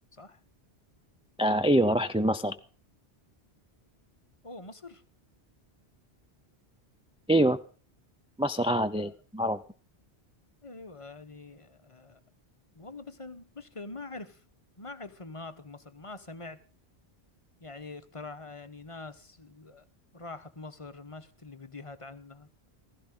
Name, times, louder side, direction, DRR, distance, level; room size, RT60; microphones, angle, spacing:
voice 1, 1.4-2.6 7.3-7.6 8.4-9.6, right 1 dB, 10° right, 0.4 m, -25 dB
voice 2, 4.4-5.0 8.9-9.1 10.6-12.2 12.7-14.4 14.8-16.6 17.6-19.9 20.1-22.7, left 3 dB, 30° left, 1.1 m, -44 dB
16.0 x 15.0 x 3.8 m
omnidirectional pair, 1.1 m